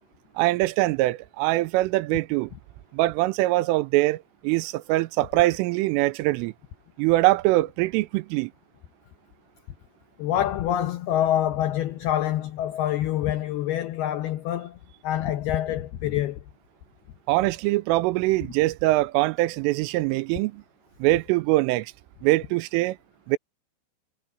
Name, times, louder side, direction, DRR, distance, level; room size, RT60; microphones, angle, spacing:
voice 1, 0.4-2.5 2.9-6.5 7.0-8.5 17.3-20.6 21.0-21.9 22.2-23.0 23.3-23.4, right 19 dB, 85° right, 3.2 m, -23 dB
voice 2, 10.2-14.8 15.0-16.4, left 11 dB, 90° left, 2.2 m, -26 dB
omnidirectional pair, 5.8 m